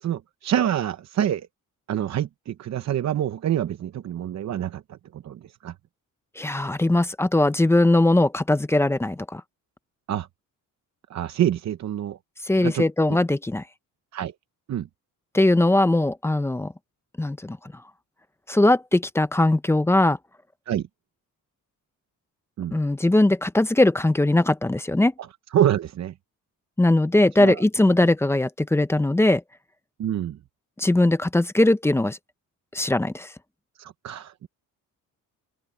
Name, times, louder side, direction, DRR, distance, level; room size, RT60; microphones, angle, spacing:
voice 1, 0.0-1.5 1.9-5.7 10.1-10.3 11.1-12.2 12.6-12.8 14.1-14.3 14.7-14.9 20.7-20.9 22.6-22.8 25.5-26.1 27.4-27.6 30.0-30.4 33.8-34.5, right 10 dB, 50° right, 0.8 m, -26 dB
voice 2, 6.4-9.4 12.4-13.6 15.3-16.7 17.2-17.6 18.5-20.2 22.7-25.1 26.8-29.4 30.8-32.2 32.7-33.3, left 2 dB, 10° left, 0.6 m, -20 dB
open air
cardioid pair, 155°, 34 cm